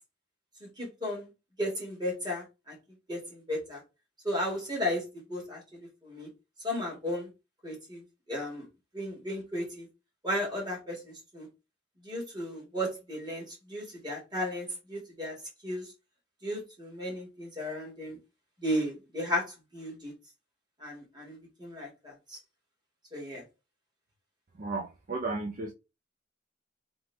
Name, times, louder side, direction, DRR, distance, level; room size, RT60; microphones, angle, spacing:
voice 1, 0.8-1.3 1.6-2.8 3.1-3.8 4.2-6.3 6.6-7.3 7.6-8.0 8.3-8.7 8.9-9.9 10.2-11.5 12.0-15.4 15.6-15.9 16.4-18.2 18.6-20.1 20.8-22.4 23.1-23.4, equal, 20° right, 2.3 m, -35 dB
voice 2, 24.6-25.7, right 3 dB, 45° right, 0.5 m, -34 dB
3.8 x 3.3 x 3.4 m
head